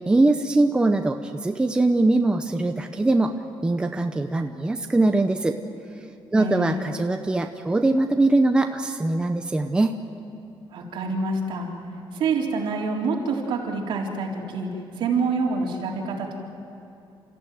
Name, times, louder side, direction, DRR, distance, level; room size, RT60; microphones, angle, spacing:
voice 1, 0.1-3.3 3.6-5.6 6.3-10.0, right 2 dB, 10° right, 5 dB, 0.7 m, -22 dB
voice 2, 6.3-6.8 10.7-11.7 12.1-14.7 15.0-16.4, right 4 dB, 65° right, -2 dB, 3.8 m, -26 dB
30.0 x 15.0 x 9.4 m, 2.8 s
cardioid pair, 180°, 9 cm